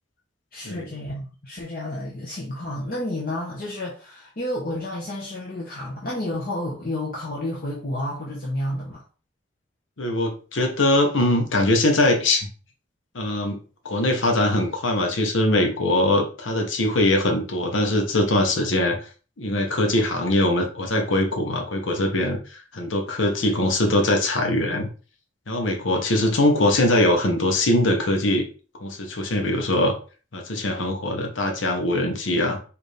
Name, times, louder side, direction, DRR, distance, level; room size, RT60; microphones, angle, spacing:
voice 1, 0.5-9.0, left 1 dB, 50° left, 0.9 m, -30 dB
voice 2, 10.0-12.5 13.1-13.6 13.8-19.0 19.4-24.9 25.5-28.4 28.8-29.9 30.3-32.6, left 1 dB, 85° left, 0.9 m, -22 dB
4.6 x 2.6 x 3.2 m
head